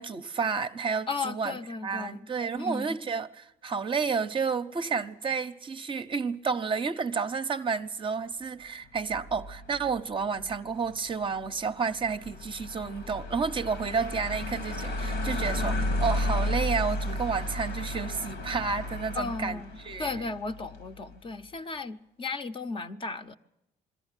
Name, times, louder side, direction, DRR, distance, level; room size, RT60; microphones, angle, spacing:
voice 1, 0.0-20.2, right 5 dB, 30° right, 0.7 m, -31 dB
voice 2, 1.1-2.3 2.6-3.0 19.2-19.7 20.0-23.3, left 4 dB, 30° left, 0.7 m, -35 dB
sound 1, 9.0-21.2, left 1 dB, 90° left, 2.2 m, -33 dB
22.0 x 14.0 x 9.8 m
cardioid pair, 110°, 17 cm